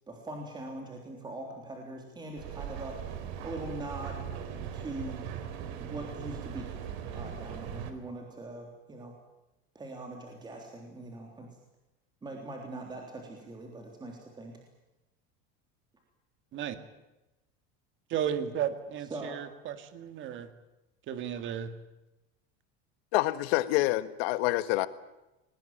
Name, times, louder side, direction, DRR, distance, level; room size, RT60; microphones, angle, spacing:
voice 1, 0.1-3.0 3.4-4.3 4.7-5.3 5.8-9.1 9.8-11.6 12.2-14.6 19.1-19.4, right 2 dB, 15° right, 1 dB, 3.6 m, -42 dB
Mechanical fan, 2.4-7.9, right 8 dB, 80° right, 3.8 m, -39 dB
voice 2, 18.1-20.5 21.1-21.7, right 9 dB, 40° right, 10 dB, 2.1 m, -34 dB
voice 3, 23.1-24.9, left 17 dB, 80° left, 13 dB, 1.6 m, -27 dB
22.5 x 19.5 x 9.0 m, 0.99 s
cardioid pair, 160°, 31 cm